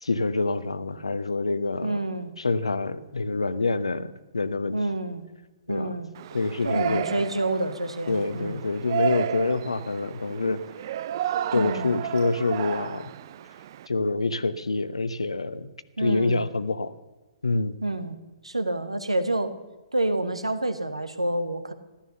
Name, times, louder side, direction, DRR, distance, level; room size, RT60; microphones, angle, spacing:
voice 1, 0.0-2.0 2.4-4.8 5.7-6.0 6.3-7.1 8.1-10.6 11.5-13.1 13.9-15.7 16.0-16.9 17.4-17.7, left 3 dB, 75° left, 14 dB, 1.0 m, -26 dB
voice 2, 1.8-2.3 4.7-5.2 5.7-6.1 6.6-8.6 11.5-11.9 16.0-16.4 17.8-18.2 18.4-19.5 19.9-21.7, right 2 dB, 85° right, 10 dB, 1.5 m, -28 dB
Yell, 6.2-13.9, right 10 dB, 45° right, 0.5 m, -32 dB
15.0 x 12.5 x 6.9 m, 1.1 s
figure-of-eight pair, 120°, 3 cm